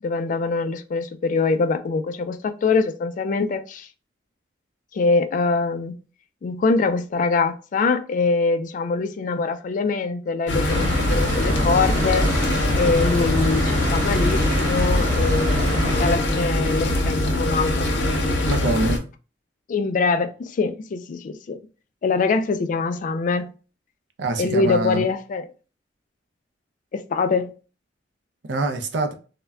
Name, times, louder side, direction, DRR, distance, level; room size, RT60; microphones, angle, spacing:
voice 1, 0.0-3.9 4.9-6.0 6.4-12.3 12.8-17.9 19.7-21.6 22.0-23.5 24.4-25.5 26.9-27.6, left 4 dB, 45° left, 0.3 m, -23 dB
sound 1, 10.5-19.0, left 1 dB, 85° left, 0.6 m, -23 dB
sound 2, 10.7-16.2, equal, 40° right, 0.8 m, -25 dB
voice 2, 18.4-19.0 24.2-25.1 28.5-29.1, right 2 dB, 75° right, 0.5 m, -24 dB
2.1 x 2.1 x 3.5 m
head